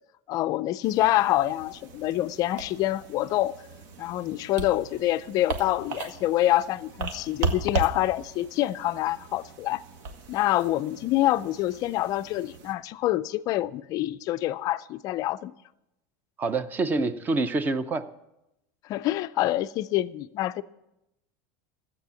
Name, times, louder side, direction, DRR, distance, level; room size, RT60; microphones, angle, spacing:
voice 1, 0.3-3.5 4.0-9.8 10.3-15.5 18.9-20.6, left 15 dB, 35° left, 0.4 m, -26 dB
sound 1, 0.8-12.7, right 4 dB, 65° right, 1.5 m, -37 dB
voice 2, 16.4-18.0, right 3 dB, 15° right, 0.5 m, -26 dB
13.5 x 8.3 x 6.9 m
supercardioid pair, 165°, 11 cm